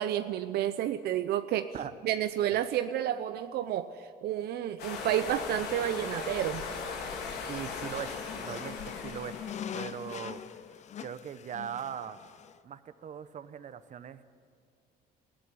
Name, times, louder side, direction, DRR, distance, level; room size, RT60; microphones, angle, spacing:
voice 1, 0.0-1.7 2.0-6.7, right 11 dB, 75° right, 10 dB, 0.8 m, -30 dB
sound 1, 4.8-10.6, left 5 dB, 80° left, 3.8 m, -39 dB
sound 2, 7.4-12.6, left 9 dB, 45° left, 0.6 m, -43 dB
voice 2, 7.5-9.4 9.7-10.6 11.0-12.2 12.6-14.2, right 8 dB, 45° right, 12 dB, 1.1 m, -40 dB
19.5 x 15.0 x 9.9 m, 2.1 s
cardioid pair, 110°, 17 cm